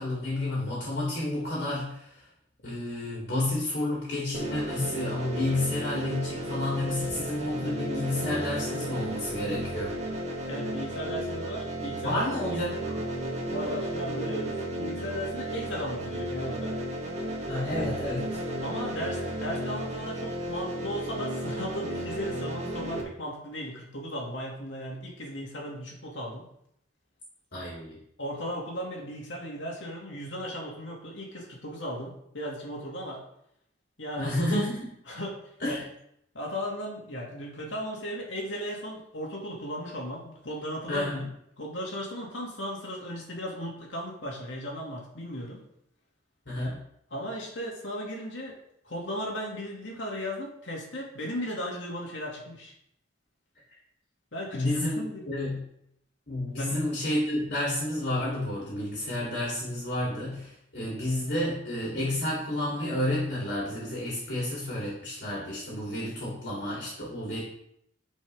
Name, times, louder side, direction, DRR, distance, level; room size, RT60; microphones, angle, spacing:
voice 1, 0.0-2.2 2.6-10.0 12.0-13.0 17.5-18.4 27.5-28.0 34.2-34.9 35.6-35.8 40.9-41.3 46.4-46.8 54.5-55.6 56.3-67.4, left 1 dB, 60° left, -7 dB, 3.2 m, -30 dB
sound 1, 4.3-23.0, right 1 dB, 35° right, 1.5 m, -34 dB
voice 2, 10.5-12.6 13.5-16.8 18.6-26.5 28.2-33.2 34.0-34.3 35.1-35.4 35.7-35.8 36.3-41.3 41.6-45.6 47.1-48.6 48.8-52.7 54.3-55.2 56.6-56.8, equal, 85° left, -1 dB, 2.3 m, -36 dB
10.5 x 5.4 x 3.5 m, 0.75 s
head